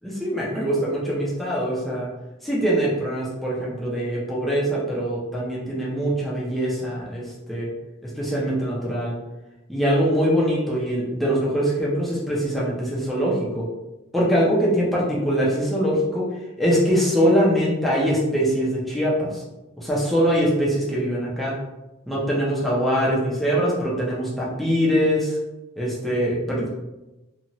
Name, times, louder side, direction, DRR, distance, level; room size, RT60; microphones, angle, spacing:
voice 1, 0.0-2.1 2.4-7.7 8.0-9.1 9.7-13.7 14.1-16.2 16.6-19.4 19.8-21.6 22.1-25.4 25.8-26.8, equal, ahead, -7 dB, 0.6 m, -23 dB
2.7 x 2.4 x 2.9 m, 1.0 s
head